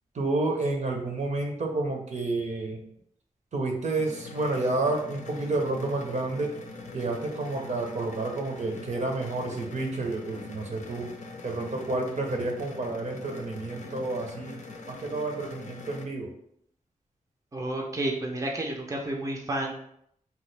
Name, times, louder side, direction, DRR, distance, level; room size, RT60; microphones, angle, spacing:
voice 1, 0.1-2.8 3.5-6.5 6.9-11.1 11.4-14.5 14.9-16.3, right 2 dB, 55° right, 1 dB, 0.7 m, -30 dB
sound 1, 4.0-16.0, left 3 dB, 60° left, 0.5 m, -43 dB
voice 2, 17.5-19.7, right 1 dB, 20° right, 0 dB, 0.5 m, -31 dB
2.9 x 2.3 x 3.3 m, 0.71 s
cardioid pair, 75°, 14 cm